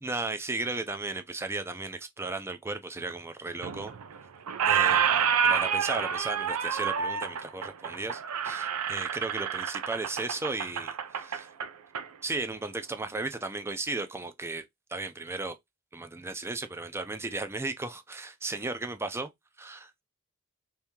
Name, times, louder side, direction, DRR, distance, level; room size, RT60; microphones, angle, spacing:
voice 1, 0.0-3.9 4.7-11.5 12.2-14.6 14.9-15.6 15.9-19.3 19.6-20.0, right 3 dB, 10° right, 0.4 m, -35 dB
Squeak, 3.6-4.2 4.5-12.1, right 7 dB, 85° right, 0.5 m, -28 dB
2.9 x 2.7 x 3.5 m
head